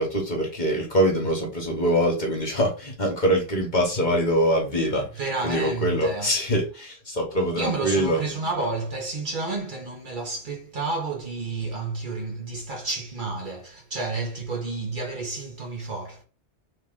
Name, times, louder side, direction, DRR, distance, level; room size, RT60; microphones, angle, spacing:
voice 1, 0.0-5.1 5.4-8.2, equal, 45° left, 1.2 m, -24 dB
voice 2, 5.1-6.3 7.5-16.2, right 3 dB, 50° right, 1.2 m, -30 dB
3.1 x 3.0 x 3.6 m
omnidirectional pair, 1.2 m